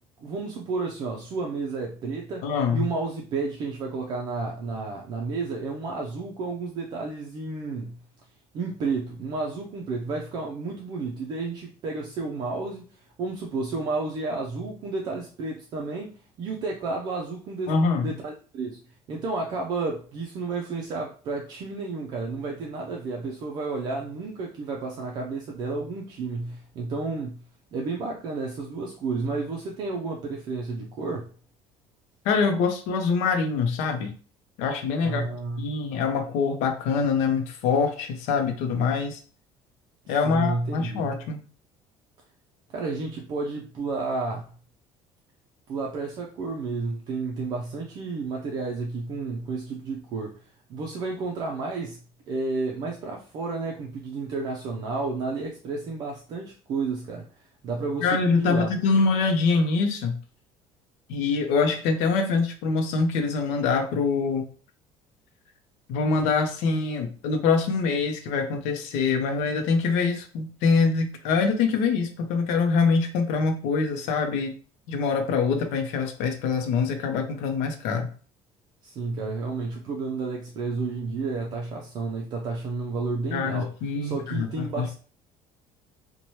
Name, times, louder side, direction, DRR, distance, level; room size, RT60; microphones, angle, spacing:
voice 1, 0.2-8.0 8.5-12.9 13.2-18.8 19.1-27.4 27.7-31.3 35.0-35.7 40.1-41.2 42.7-44.4 45.7-50.4 50.7-52.0 52.3-58.7 78.8-83.7 84.0-85.0, right 3 dB, 40° right, 0 dB, 0.4 m, -31 dB
voice 2, 2.4-2.9 17.7-18.1 32.2-34.1 34.6-35.2 35.6-39.2 40.1-41.4 58.0-60.2 61.1-64.4 65.9-74.5 74.9-78.1 83.3-85.0, left 4 dB, 85° left, 5 dB, 0.6 m, -24 dB
2.8 x 2.2 x 3.0 m, 0.39 s
cardioid pair, 175°, 11 cm